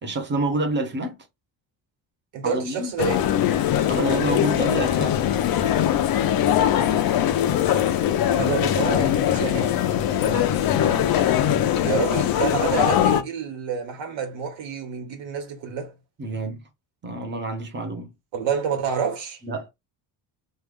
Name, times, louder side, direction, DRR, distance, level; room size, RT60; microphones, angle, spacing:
voice 1, 0.0-1.2 2.4-2.9 3.9-5.2 8.4-8.6 10.1-11.6 16.2-16.6 17.0-18.1 19.4-19.7, right 2 dB, 25° right, 0.9 m, -29 dB
voice 2, 2.3-3.2 8.2-9.7 11.8-15.9 18.3-19.4, right 7 dB, 80° right, 1.6 m, -28 dB
sound 1, 3.0-13.2, left 10 dB, 55° left, 0.6 m, -21 dB
3.3 x 2.4 x 3.4 m
cardioid pair, 170°, 44 cm